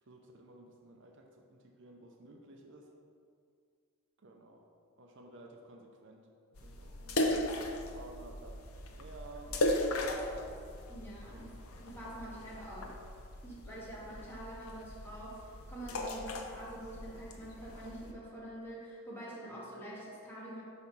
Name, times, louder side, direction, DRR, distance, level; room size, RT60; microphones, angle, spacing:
voice 1, 0.1-2.9 4.2-4.7 5.0-6.3 6.6-10.5 11.3-11.7 19.5-19.8, right 2 dB, 60° right, 2 dB, 0.6 m, -54 dB
sound 1, 6.5-18.1, left 1 dB, 90° left, 0.7 m, -38 dB
voice 2, 10.9-11.5 11.8-12.9 13.4-20.6, right 1 dB, 10° left, -7 dB, 1.6 m, -46 dB
5.9 x 4.3 x 5.2 m, 2.2 s
head